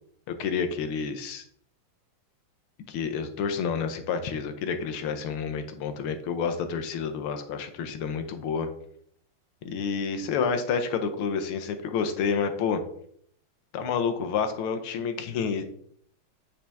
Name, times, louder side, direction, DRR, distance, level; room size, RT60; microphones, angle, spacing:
voice 1, 0.3-1.4 2.9-8.7 9.6-12.8 13.7-15.6, left 6 dB, 90° left, 8 dB, 1.7 m, -29 dB
8.7 x 4.9 x 3.4 m, 0.66 s
omnidirectional pair, 2.3 m